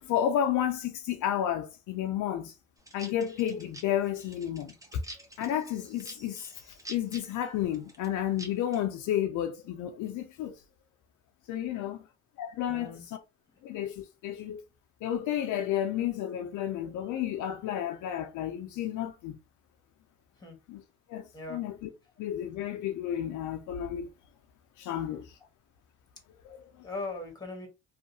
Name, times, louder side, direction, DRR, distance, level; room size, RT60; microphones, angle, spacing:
voice 1, 0.0-2.5 2.9-5.0 5.4-6.5 6.9-10.5 11.5-12.0 12.4-12.9 13.6-14.6 15.0-19.3 20.7-20.8 21.1-21.7 22.2-24.1 24.8-25.3 26.4-26.9, left 10 dB, 80° left, 0.5 m, -31 dB
sound 1, 2.8-8.8, right 1 dB, 10° right, 0.6 m, -48 dB
voice 2, 12.7-13.0 20.3-20.6 21.3-21.7 24.9-25.2 26.8-27.7, left 3 dB, 15° left, 1.2 m, -40 dB
2.6 x 2.4 x 2.7 m
cardioid pair, 90°, 30 cm